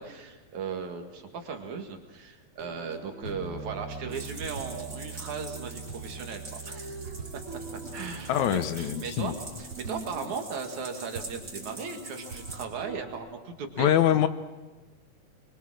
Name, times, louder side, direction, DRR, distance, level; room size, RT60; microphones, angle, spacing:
voice 1, 0.0-7.1 7.9-13.9, right 5 dB, 65° right, 4 dB, 3.2 m, -37 dB
sound 1, 2.6-13.1, right 3 dB, 45° right, 3.6 m, -44 dB
Bass guitar, 3.2-9.5, right 5 dB, 45° left, 3.2 m, -43 dB
sound 2, 4.1-12.6, right 2 dB, 25° right, 4.2 m, -45 dB
voice 2, 8.3-9.3 13.8-14.3, left 11 dB, 70° left, 11 dB, 2.1 m, -24 dB
24.5 x 23.5 x 6.2 m, 1.3 s
omnidirectional pair, 3.7 m